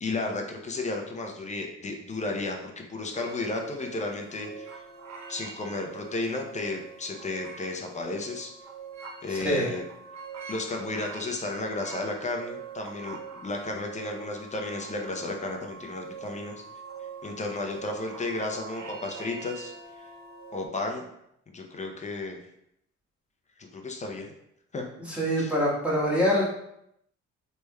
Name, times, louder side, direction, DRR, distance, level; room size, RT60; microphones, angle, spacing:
voice 1, 0.0-4.8 5.3-8.5 9.2-9.8 10.5-16.6 17.2-19.7 20.5-21.0 21.5-22.4 23.7-24.3 24.7-24.9 25.4-25.5, left 2 dB, 25° left, 2 dB, 0.6 m, -33 dB
sound 1, 3.1-20.7, right 5 dB, 65° right, 0.8 m, -44 dB
voice 2, 9.3-9.7 25.1-26.5, equal, 5° right, -6 dB, 1.2 m, -25 dB
3.3 x 3.2 x 2.2 m, 0.78 s
cardioid pair, 90°, 30 cm